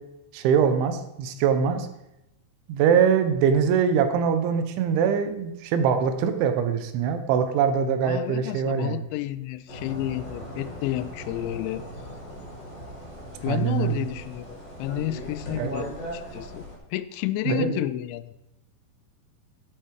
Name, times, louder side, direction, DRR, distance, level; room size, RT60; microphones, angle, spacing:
voice 1, 0.3-1.9 2.7-9.1 13.5-14.0 15.6-15.7 17.5-17.8, right 7 dB, 75° right, 8 dB, 3.3 m, -23 dB
voice 2, 8.0-11.8 13.4-16.7 16.9-18.3, left 14 dB, 90° left, 14 dB, 2.6 m, -31 dB
sound 1, 9.7-16.7, equal, 25° left, 3.6 m, -39 dB
15.0 x 8.6 x 4.8 m, 0.88 s
omnidirectional pair, 5.7 m